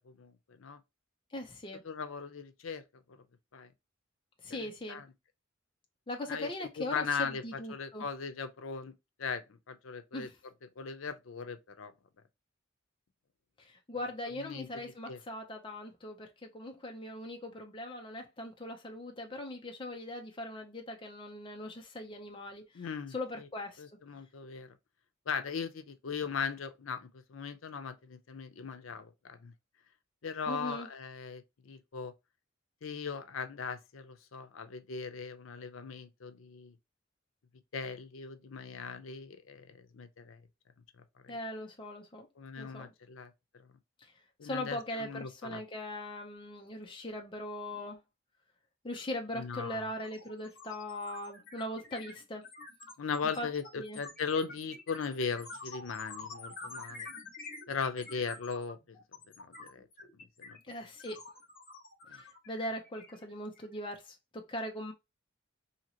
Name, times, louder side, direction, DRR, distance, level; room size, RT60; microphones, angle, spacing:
voice 1, 0.1-0.8 1.8-2.8 3.1-3.2 3.5-3.7 4.5-5.1 6.3-8.9 9.2-10.3 10.8-11.9 14.3-15.2 22.7-23.5 23.8-24.8 25.3-29.5 30.2-32.1 32.8-36.8 37.7-40.4 41.2-41.4 42.4-43.7 44.4-45.6 49.3-49.9 53.0-57.1 57.7-59.0 59.4-59.9 60.4-60.6 62.1-62.2, left 5 dB, 85° left, 0.6 m, -39 dB
voice 2, 1.3-1.8 4.4-5.0 6.1-8.1 10.1-10.3 13.6-22.8 23.1-23.8 30.5-30.9 41.3-42.3 42.6-42.9 44.0-44.1 44.4-48.0 48.8-52.4 53.4-53.5 53.8-54.0 60.7-61.2 62.1-64.9, left 1 dB, 25° left, 0.6 m, -40 dB
sound 1, 48.9-49.1 49.4-63.7, left 3 dB, 45° left, 1.2 m, -48 dB
2.8 x 2.8 x 2.7 m
head